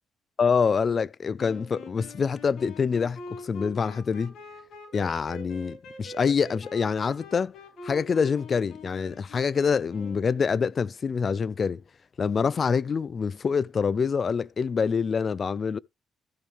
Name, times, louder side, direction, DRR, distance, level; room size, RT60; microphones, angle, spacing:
voice 1, 0.4-4.3 4.9-7.5 7.8-11.8 12.2-15.8, left 6 dB, 45° left, 0.5 m, -26 dB
sound 1, 1.4-10.5, left 1 dB, 75° left, 5.4 m, -44 dB
14.5 x 5.2 x 3.2 m
cardioid pair, 90°, 0 cm